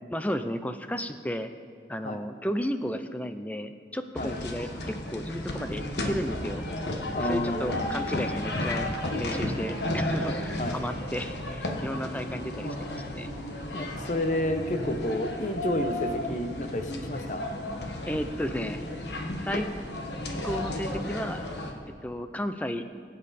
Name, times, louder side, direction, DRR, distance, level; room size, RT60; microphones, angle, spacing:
voice 1, 0.1-1.5 1.9-6.6 7.2-13.3 18.1-18.8 19.4-19.7 20.4-21.5 22.0-22.8, equal, 10° left, 9 dB, 0.5 m, -33 dB
sound 1, 4.1-21.7, left 1 dB, 75° left, 1.3 m, -33 dB
voice 2, 7.1-7.9 10.6-10.8 13.7-17.4, left 1 dB, 45° left, 6 dB, 0.9 m, -30 dB
20.5 x 8.6 x 4.2 m, 2.2 s
head